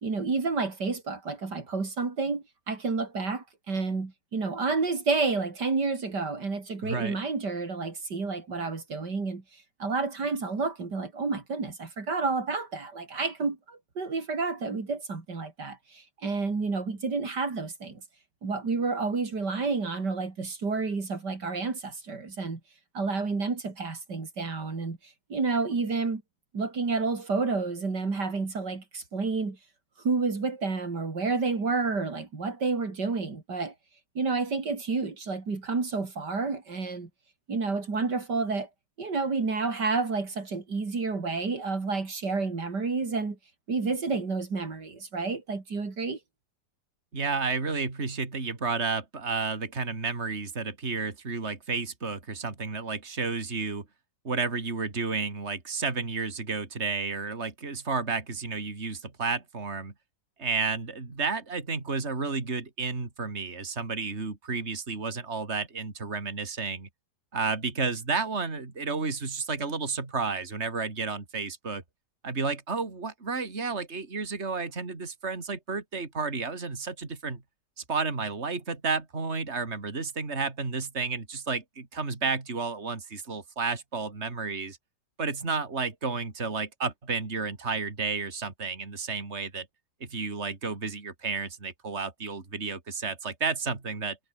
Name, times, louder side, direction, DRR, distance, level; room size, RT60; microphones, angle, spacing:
voice 1, 0.0-9.4 9.8-18.0 18.4-22.6 22.9-25.0 25.3-26.2 26.5-29.6 30.0-33.7 34.2-37.1 37.5-38.7 39.0-43.4 43.7-46.2, right 4 dB, 75° right, 4.0 m, -30 dB
voice 2, 6.8-7.2 47.1-53.8 54.2-59.9 60.4-66.9 67.3-71.8 72.2-77.4 77.8-84.8 85.2-89.7 90.0-94.2, right 4 dB, 40° right, 3.4 m, -31 dB
omnidirectional pair, 1.8 m